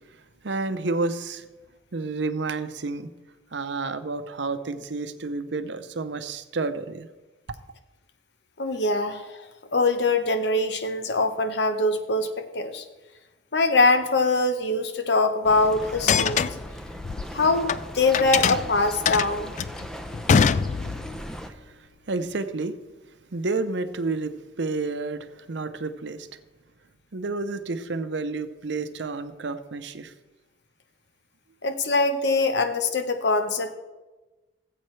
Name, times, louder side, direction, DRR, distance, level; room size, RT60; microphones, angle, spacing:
voice 1, 0.4-1.4 1.9-3.1 3.5-7.1 21.5-22.7 23.3-26.3 27.1-30.1, right 3 dB, 75° right, 10 dB, 0.7 m, -30 dB
voice 2, 8.6-9.4 9.7-12.8 13.5-16.6 17.3-17.7 17.9-19.5 31.6-33.7, left 3 dB, 65° left, 8 dB, 0.9 m, -23 dB
sound 1, 15.4-21.5, equal, 5° left, 0.6 m, -38 dB
sound 2, 15.9-17.8 18.1-21.2, left 6 dB, 40° left, 0.3 m, -23 dB
18.0 x 7.8 x 3.2 m, 1.1 s
head